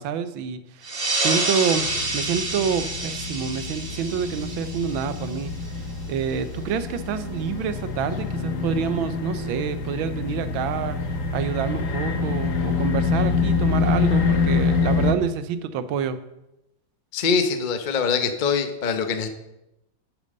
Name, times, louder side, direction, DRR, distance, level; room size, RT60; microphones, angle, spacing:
voice 1, 0.0-1.9 2.1-5.5 6.1-11.0 11.3-16.2, right 7 dB, 75° right, 12 dB, 1.5 m, -27 dB
sound 1, 0.8-5.9, right 2 dB, 30° right, 1.4 m, -28 dB
sound 2, 1.7-15.1, left 4 dB, 45° left, 1.2 m, -26 dB
voice 2, 17.1-19.3, left 5 dB, 75° left, 7 dB, 0.4 m, -23 dB
8.7 x 8.1 x 6.6 m, 0.91 s
omnidirectional pair, 2.3 m